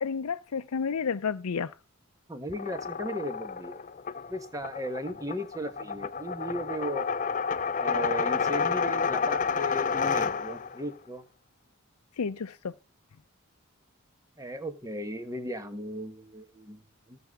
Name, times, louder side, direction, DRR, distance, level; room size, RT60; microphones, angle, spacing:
voice 1, 0.0-1.7 12.2-12.7, left 6 dB, 90° left, 0.5 m, -31 dB
voice 2, 2.3-3.8 4.3-7.1 7.8-11.2 14.4-17.2, equal, 15° right, 1.2 m, -36 dB
sound 1, 2.5-10.8, left 5 dB, 35° left, 0.5 m, -30 dB
19.0 x 6.8 x 3.6 m
head